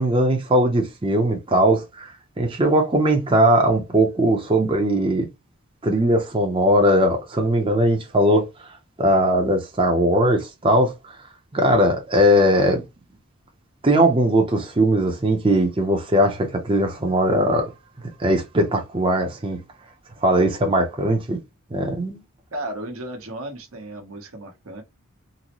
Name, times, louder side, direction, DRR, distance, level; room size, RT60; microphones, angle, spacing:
voice 1, 0.0-5.3 5.8-8.7 9.0-11.2 11.5-12.8 13.8-17.7 18.2-19.6 20.2-21.4 21.7-22.2, right 1 dB, 25° right, 0.6 m, -19 dB
voice 2, 22.5-24.8, right 1 dB, 80° right, 1.1 m, -34 dB
3.9 x 2.1 x 3.0 m
head